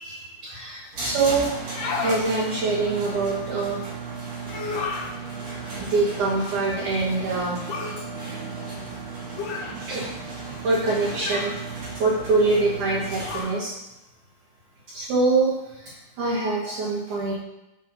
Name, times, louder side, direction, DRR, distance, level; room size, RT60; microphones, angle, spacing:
voice 1, 0.0-1.5 2.0-3.8 4.5-4.6 5.8-7.7 8.3-8.4 9.9-10.1 10.6-11.6 12.0-13.7 14.9-17.3, right 3 dB, 70° right, -7 dB, 1.9 m, -24 dB
sound 1, 0.9-13.4, right 4 dB, 40° right, 2.9 m, -35 dB
sound 2, 1.6-2.2 4.4-5.1 7.7-8.0 9.4-9.8 11.1-11.6 13.2-13.6, left 4 dB, 75° left, 2.0 m, -31 dB
7.1 x 5.6 x 4.0 m, 0.92 s
omnidirectional pair, 5.4 m